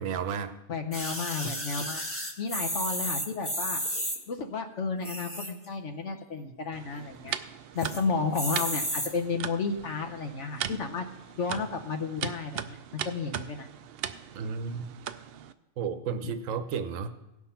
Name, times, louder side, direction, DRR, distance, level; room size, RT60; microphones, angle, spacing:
voice 1, 0.0-0.5 7.3-7.4 14.3-14.9 15.8-17.1, right 6 dB, 65° right, 9 dB, 1.1 m, -32 dB
voice 2, 0.7-2.0 2.4-3.8 4.3-7.4 7.7-11.0 11.3-13.7 16.2-16.3, left 4 dB, 55° left, 4 dB, 1.1 m, -32 dB
sound 1, 0.9-4.2 4.9-5.7 6.1-6.2 6.4-6.5 6.9-7.3 7.8-8.0 8.3-9.1 9.8-9.9, equal, 10° left, 1.5 m, -33 dB
sound 2, 6.7-15.5, right 9 dB, 90° right, 0.5 m, -39 dB
17.0 x 6.0 x 5.7 m, 0.99 s
omnidirectional pair, 1.6 m